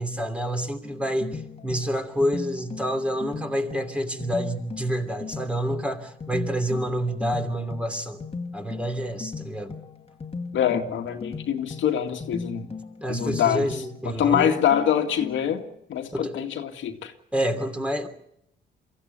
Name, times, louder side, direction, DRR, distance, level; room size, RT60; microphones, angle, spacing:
voice 1, 0.0-8.2 8.5-9.8 13.0-14.6 16.1-16.5 17.3-18.1, equal, 5° right, 3.0 m, -28 dB
sound 1, 0.8-15.7, left 4 dB, 30° left, 2.1 m, -38 dB
voice 2, 10.5-12.7 13.1-13.7 14.1-15.6 15.9-17.1, left 9 dB, 75° left, 2.1 m, -24 dB
23.5 x 15.0 x 9.4 m
cardioid pair, 90°, 20 cm